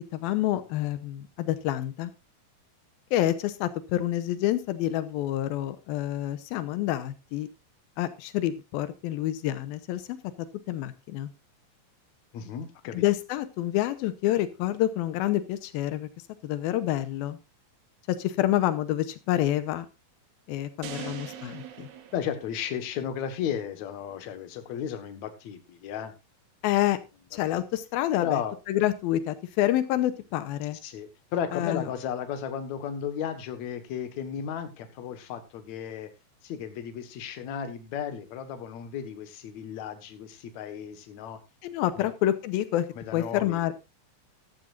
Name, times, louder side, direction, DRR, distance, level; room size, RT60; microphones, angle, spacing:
voice 1, 0.0-2.1 3.1-7.5 8.0-10.2 10.7-11.3 12.9-16.1 16.4-17.4 18.1-19.9 20.5-21.9 26.6-27.0 27.3-28.4 28.7-30.8 31.5-31.8 41.6-42.9 43.1-43.7, left 13 dB, 85° left, 13 dB, 2.7 m, -28 dB
voice 2, 12.3-13.0 21.0-21.2 22.1-26.1 27.5-27.6 28.2-28.5 30.7-36.1 36.4-41.4 42.0-42.1 43.0-43.7, left 8 dB, 60° left, 9 dB, 2.5 m, -34 dB
sound 1, 20.8-23.1, right 10 dB, 60° right, 2.3 m, -42 dB
14.5 x 12.5 x 2.5 m, 0.25 s
omnidirectional pair, 4.2 m